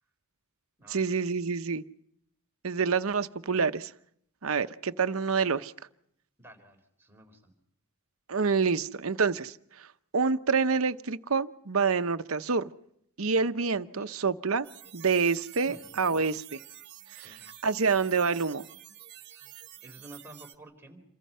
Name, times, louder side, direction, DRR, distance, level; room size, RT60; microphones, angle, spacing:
voice 1, 0.9-1.8 2.6-3.9 4.4-5.7 8.3-9.9 10.1-12.7 13.2-14.7 14.9-16.6 17.2-17.4 17.6-18.7, right 5 dB, 70° right, 0.9 m, -27 dB
voice 2, 6.4-7.5 15.6-16.2 17.2-17.4 19.8-21.0, right 1 dB, 10° right, 3.8 m, -51 dB
sound 1, 14.6-20.6, right 12 dB, 50° right, 1.5 m, -49 dB
28.0 x 24.5 x 5.6 m
head